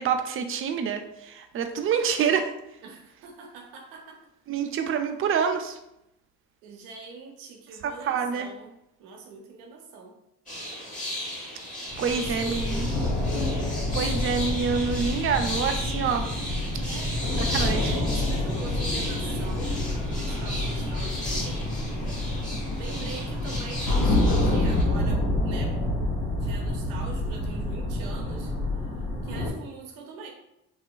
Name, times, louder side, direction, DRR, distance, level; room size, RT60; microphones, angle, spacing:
voice 1, 0.0-2.5 4.5-5.8 7.8-8.5 12.0-12.9 13.9-16.3 17.4-17.9, right 6 dB, 40° right, 6 dB, 0.4 m, -27 dB
voice 2, 2.8-4.2 6.6-10.2 12.0-12.9 16.8-17.7 18.1-21.7 22.7-25.8 26.4-28.5 29.2-30.3, right 4 dB, 85° right, 2 dB, 0.6 m, -43 dB
sound 1, 10.5-24.8, left 1 dB, 25° left, 1.0 m, -35 dB
sound 2, 11.9-29.5, left 1 dB, 80° left, 0.9 m, -28 dB
2.8 x 2.4 x 2.2 m, 0.84 s
supercardioid pair, 80°, 34 cm